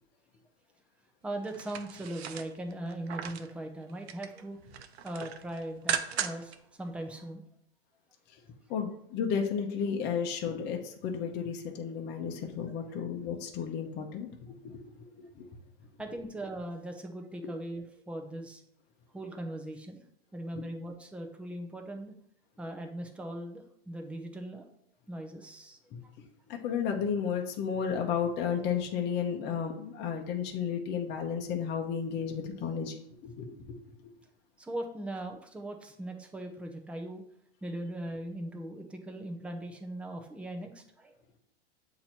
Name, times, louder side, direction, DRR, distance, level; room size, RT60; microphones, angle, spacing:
voice 1, 1.2-4.6 5.0-7.4 12.8-13.1 16.0-18.6 19.1-20.0 20.3-22.1 22.6-24.7 25.1-25.8 34.6-37.2 37.6-41.1, right 1 dB, 5° right, 3 dB, 0.6 m, -39 dB
sound 1, 1.4-3.5 3.9-4.4 4.7-6.6 6.9-7.0, right 9 dB, 75° right, 0.7 m, -37 dB
voice 2, 8.7-14.3 14.6-14.8 15.1-15.5 20.5-20.6 25.9-26.0 26.5-32.9 33.2-33.8, left 7 dB, 35° left, 2 dB, 0.8 m, -33 dB
7.5 x 2.9 x 4.4 m, 0.73 s
supercardioid pair, 135°, 31 cm